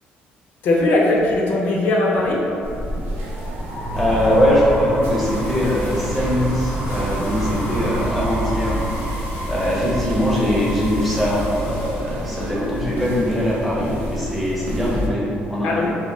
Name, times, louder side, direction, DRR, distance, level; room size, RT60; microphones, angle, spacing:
voice 1, 0.6-2.4 15.6-15.9, left 2 dB, 60° left, -2 dB, 0.4 m, -19 dB
sound 1, 2.0-12.9, right 1 dB, 45° right, 0.7 m, -31 dB
sound 2, 2.6-15.1, equal, 80° right, 0.4 m, -31 dB
voice 2, 3.9-8.8 9.5-15.7, left 1 dB, ahead, -7 dB, 0.6 m, -21 dB
sound 3, 5.1-12.1, right 2 dB, 85° left, 0.8 m, -31 dB
2.3 x 2.1 x 3.8 m, 2.6 s
cardioid pair, 145°, 4 cm